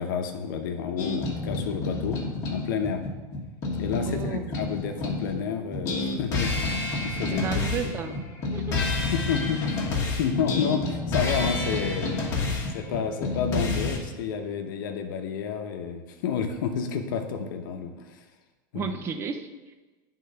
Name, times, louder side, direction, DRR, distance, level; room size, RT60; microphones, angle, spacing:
voice 1, 0.0-3.0 3.8-7.5 8.0-8.1 9.1-12.1 12.7-18.2 18.7-18.9, left 7 dB, 70° left, 5 dB, 0.8 m, -30 dB
sound 1, 1.0-5.4 5.7-14.0, left 3 dB, 30° left, 1.5 m, -29 dB
voice 2, 4.0-4.5 7.3-8.2 8.5-8.8 18.7-19.8, right 5 dB, 20° right, 8 dB, 0.5 m, -33 dB
8.4 x 3.8 x 5.5 m, 1.2 s
supercardioid pair, 165°, 11 cm